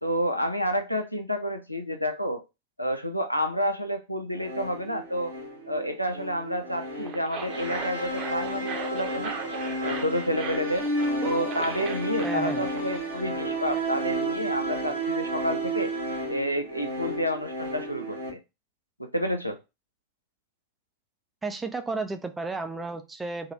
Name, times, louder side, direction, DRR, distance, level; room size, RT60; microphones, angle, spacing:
voice 1, 0.0-2.4 2.8-5.3 5.7-9.4 9.8-10.9 11.2-15.9 16.3-18.4 19.0-19.6, equal, 90° left, 6 dB, 0.5 m, -29 dB
sound 1, 4.4-18.3, right 1 dB, 85° right, 1.3 m, -32 dB
sound 2, 6.8-13.0, right 5 dB, 35° right, 0.8 m, -38 dB
voice 2, 12.2-12.6 21.4-23.5, right 3 dB, 10° right, 8 dB, 0.5 m, -32 dB
3.7 x 2.2 x 3.1 m, 0.25 s
figure-of-eight pair, 90°, 0 cm